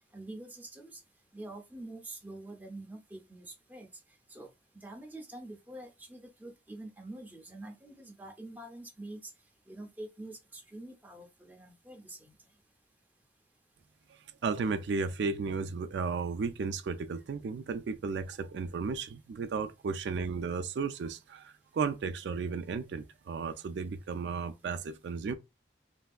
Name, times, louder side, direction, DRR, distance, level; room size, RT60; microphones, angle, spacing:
voice 1, 0.1-1.0 1.3-3.9 4.3-4.5 4.7-9.3 9.7-12.3, right 1 dB, 10° right, 0.6 m, -46 dB
voice 2, 14.4-25.4, right 5 dB, 75° right, 0.3 m, -34 dB
3.3 x 2.6 x 2.3 m
head